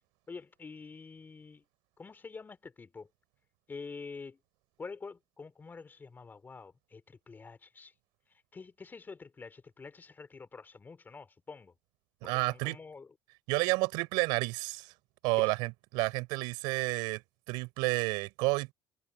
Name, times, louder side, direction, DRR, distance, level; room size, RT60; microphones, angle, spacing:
voice 1, 0.3-1.6 2.0-3.1 3.7-4.4 4.8-7.9 8.5-11.7 12.2-13.1 15.4-15.5, left 4 dB, 25° left, 2.9 m, -47 dB
voice 2, 12.2-12.8 13.5-14.9 15.2-17.2 17.5-18.7, right 25 dB, 75° right, 4.1 m, -30 dB
supercardioid pair, 80°, 8 cm